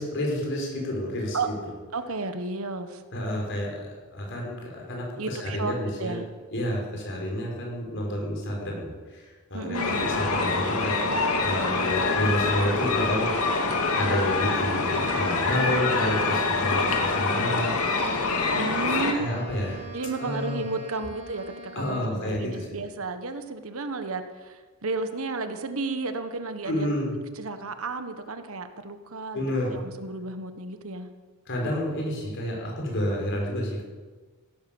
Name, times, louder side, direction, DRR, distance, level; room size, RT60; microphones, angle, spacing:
voice 1, 0.0-1.5 3.1-6.2 6.5-9.3 9.5-13.4 14.0-17.9 18.8-19.9 20.2-20.6 21.8-22.8 26.7-27.2 29.3-29.8 31.5-33.8, left 1 dB, 55° left, -1 dB, 5.3 m, -30 dB
voice 2, 1.9-3.0 5.2-6.3 9.5-10.1 18.5-19.3 19.9-27.0 27.4-29.4 29.7-31.1, right 3 dB, 65° right, 8 dB, 1.3 m, -33 dB
sound 1, 9.7-19.1, left 3 dB, 75° left, 2.4 m, -25 dB
Wind instrument woodwind instrument, 19.1-22.6, right 2 dB, 35° right, 4.1 m, -43 dB
16.0 x 12.5 x 7.1 m, 1.4 s
head